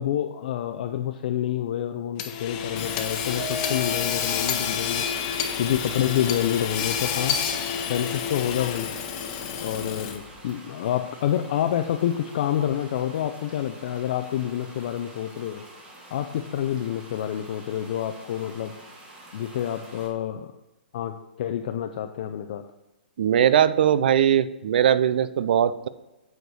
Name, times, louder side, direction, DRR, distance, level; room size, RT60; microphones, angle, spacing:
voice 1, 0.0-5.1 5.6-7.4 7.9-8.9 9.6-15.6 16.1-18.7 19.3-20.5 20.9-22.6, left 10 dB, 55° left, 5 dB, 0.5 m, -28 dB
Hammer / Sawing, 2.2-10.4, left 7 dB, 35° left, 1.0 m, -29 dB
sound 1, 2.6-20.1, right 1 dB, 20° right, 1.7 m, -47 dB
Mallet percussion, 3.4-5.7, left 2 dB, 35° right, 0.8 m, -38 dB
voice 2, 23.2-25.9, right 9 dB, 65° right, 15 dB, 0.5 m, -20 dB
8.0 x 4.6 x 6.2 m, 0.99 s
hypercardioid pair, 140°, 6 cm